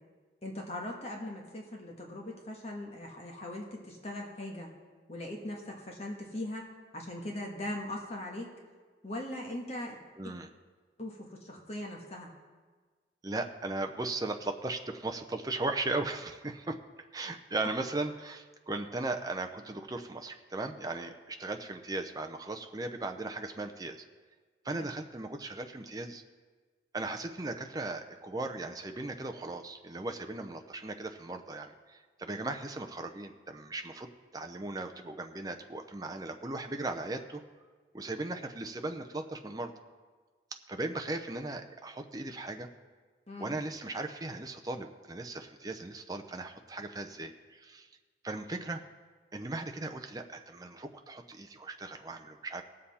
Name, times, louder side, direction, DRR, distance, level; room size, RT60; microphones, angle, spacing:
voice 1, 0.4-4.7 5.1-6.6 6.9-8.5 9.0-10.0 10.2-10.3 11.0-12.3 24.7-24.8 43.3-43.6, left 1 dB, 35° left, 0 dB, 1.4 m, -40 dB
voice 2, 10.2-10.5 13.2-16.8 17.1-24.0 24.6-26.2 26.9-37.4 37.9-39.7 40.7-42.7 43.4-47.9 48.2-48.8 49.3-52.6, right 2 dB, 20° right, 5 dB, 0.6 m, -37 dB
18.5 x 7.6 x 4.2 m, 1.4 s
head